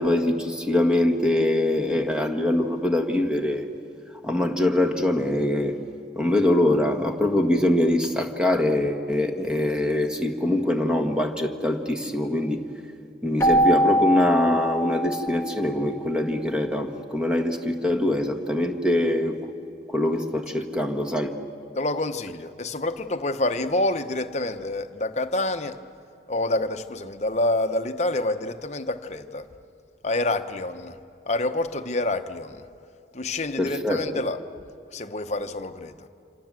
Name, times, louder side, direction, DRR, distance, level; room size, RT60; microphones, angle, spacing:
voice 1, 0.0-3.7 4.2-5.7 6.1-12.6 13.2-19.4 19.9-21.3 33.6-34.0, left 1 dB, 5° right, 1.6 m, -23 dB
Keyboard (musical), 13.4-16.0, equal, 15° left, 1.4 m, -23 dB
voice 2, 21.7-25.8 26.3-29.5 30.0-31.0 31.3-32.7 33.1-34.4 34.9-36.1, left 2 dB, 40° left, 0.9 m, -27 dB
27.0 x 27.0 x 7.6 m
head